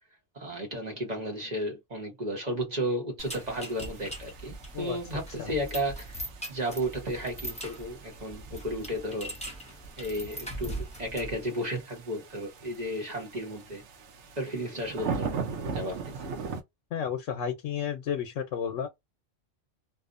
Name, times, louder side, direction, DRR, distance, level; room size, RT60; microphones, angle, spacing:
voice 1, 0.3-6.2 6.5-9.4 10.0-13.9 14.4-16.3, equal, 40° right, 0.8 m, -33 dB
sound 1, 3.2-11.4, right 1 dB, 10° left, 0.4 m, -41 dB
sound 2, 3.2-16.6, right 5 dB, 70° right, 0.9 m, -41 dB
voice 2, 16.9-18.9, left 8 dB, 75° left, 0.9 m, -32 dB
2.7 x 2.0 x 2.4 m
omnidirectional pair, 1.3 m